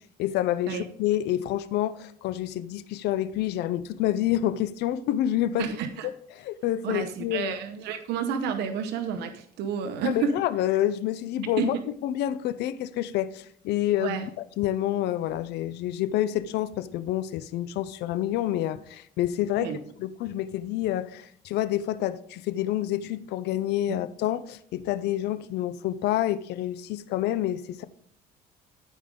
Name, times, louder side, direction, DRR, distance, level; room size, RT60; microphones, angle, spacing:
voice 1, 0.2-5.7 6.3-7.5 10.0-11.8 12.0-14.2 14.6-19.7 20.0-27.8, left 12 dB, 80° left, 0.6 m, -28 dB
voice 2, 5.6-6.1 6.8-10.3 11.4-11.8 14.0-14.3 19.6-19.8 23.9-24.0, right 7 dB, 85° right, 0.8 m, -30 dB
14.0 x 5.2 x 3.8 m
cardioid pair, 110°, 17 cm